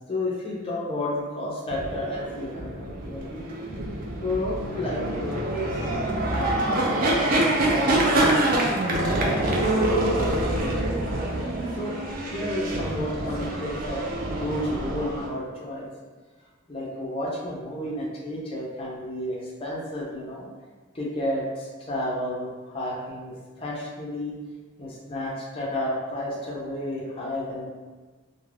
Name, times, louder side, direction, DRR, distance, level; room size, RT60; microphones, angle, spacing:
voice 1, 0.1-3.4 4.2-5.9 6.2-7.3 7.6-10.9 11.8-11.9 12.3-15.9 16.7-20.5 20.9-24.3 24.8-27.7, left 1 dB, 25° left, -5 dB, 0.5 m, -32 dB
sound 1, 1.7-15.3, right 1 dB, 45° right, 0.4 m, -26 dB
2.3 x 2.1 x 3.2 m, 1.3 s
head